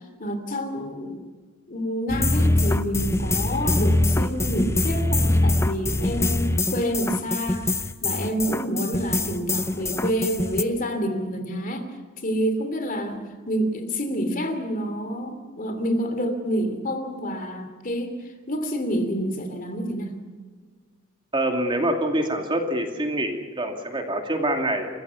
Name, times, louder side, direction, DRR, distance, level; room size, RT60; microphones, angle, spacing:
voice 1, 0.2-1.2 1.7-7.7 8.0-11.8 12.2-13.2 13.5-18.2 18.5-20.2, equal, 45° left, 8 dB, 2.8 m, -28 dB
sound 1, 2.1-10.6, left 2 dB, 15° left, 0.7 m, -23 dB
voice 2, 21.3-24.9, right 1 dB, 25° right, 4 dB, 2.5 m, -25 dB
29.5 x 15.0 x 7.0 m, 1.5 s
head